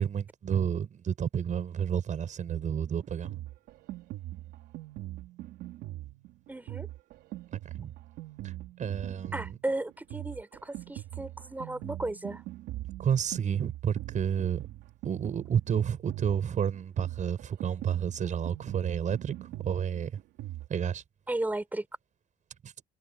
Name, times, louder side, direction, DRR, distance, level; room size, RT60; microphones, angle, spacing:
voice 1, 0.0-3.4 7.5-7.9 8.4-8.5 8.8-9.6 13.0-14.7 15.0-20.2 20.7-21.0 22.6-22.7, right 8 dB, 45° right, 7.6 m, -30 dB
Drum kit, 2.5-20.7, right 15 dB, 85° right, 4.7 m, -42 dB
voice 2, 6.5-6.9 9.3-12.4 21.3-21.9, right 2 dB, 10° right, 6.3 m, -34 dB
cardioid pair, 110°, 17 cm